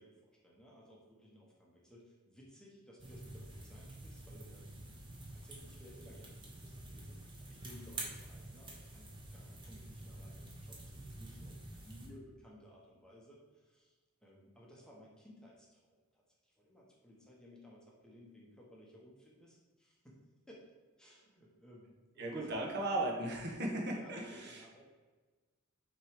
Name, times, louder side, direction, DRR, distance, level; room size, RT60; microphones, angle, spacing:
voice 1, 0.0-20.2 20.5-20.7 21.0-22.6 23.9-24.9, equal, 5° left, -4 dB, 1.0 m, -58 dB
sound 1, 3.0-12.1, right 1 dB, 20° right, 1.0 m, -48 dB
voice 2, 22.2-24.6, right 2 dB, 50° right, -1 dB, 1.1 m, -37 dB
6.2 x 3.1 x 4.9 m, 1.3 s
head